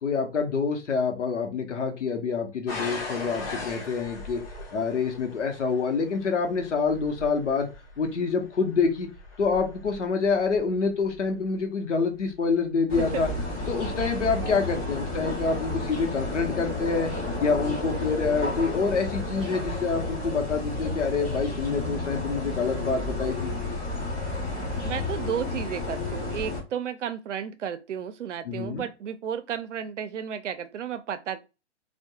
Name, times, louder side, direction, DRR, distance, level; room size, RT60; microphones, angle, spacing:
voice 1, 0.0-4.4 4.7-7.7 8.0-9.1 9.4-13.3 13.7-17.1 17.4-23.5 28.4-28.8, left 4 dB, 90° left, 0.9 m, -27 dB
sound 1, 2.7-11.5 12.2-12.6 13.2-13.3, left 3 dB, 55° left, 1.0 m, -40 dB
sound 2, 12.9-26.6, left 2 dB, 20° left, 1.2 m, -31 dB
voice 2, 24.8-31.4, right 8 dB, 90° right, 0.5 m, -33 dB
2.7 x 2.3 x 2.2 m
hypercardioid pair, 135°, 35 cm